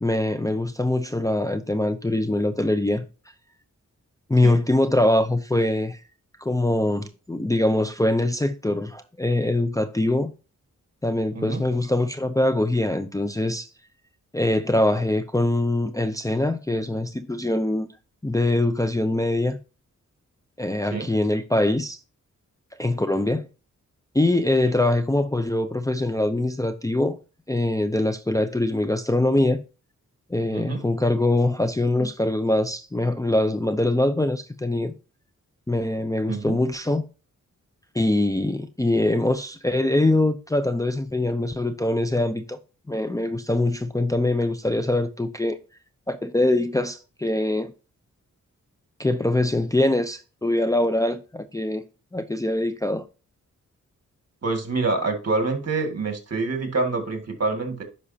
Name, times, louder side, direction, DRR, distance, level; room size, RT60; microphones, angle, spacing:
voice 1, 0.0-3.0 4.3-6.0 6.4-10.3 11.0-13.7 14.3-17.9 18.2-19.6 20.6-22.0 22.8-23.5 24.1-27.2 27.5-29.6 30.3-34.9 35.7-37.1 37.9-42.6 42.9-45.6 46.1-47.7 49.0-51.8 52.1-53.0, left 1 dB, 10° left, 0.6 m, -23 dB
voice 2, 11.3-11.6 20.9-21.1 30.5-30.8 36.3-36.6 54.4-57.8, right 3 dB, 55° right, 2.0 m, -26 dB
10.0 x 5.5 x 2.8 m
cardioid pair, 70°, 31 cm